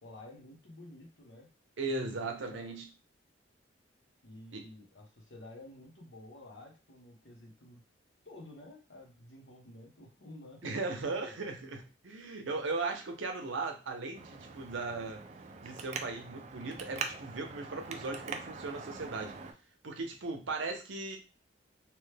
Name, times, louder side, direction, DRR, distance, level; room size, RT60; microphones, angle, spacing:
voice 1, 0.0-1.5 1.9-2.7 4.2-7.8 8.2-11.4, left 1 dB, 70° left, 0 dB, 1.0 m, -52 dB
voice 2, 1.8-2.9 4.5-4.6 10.6-15.2 15.6-19.4 19.8-21.2, right 3 dB, 85° right, 4 dB, 0.7 m, -37 dB
Traffic noise roadway noise, 14.1-19.5, right 5 dB, 35° right, 0.3 m, -43 dB
3.0 x 2.2 x 3.3 m, 0.31 s
head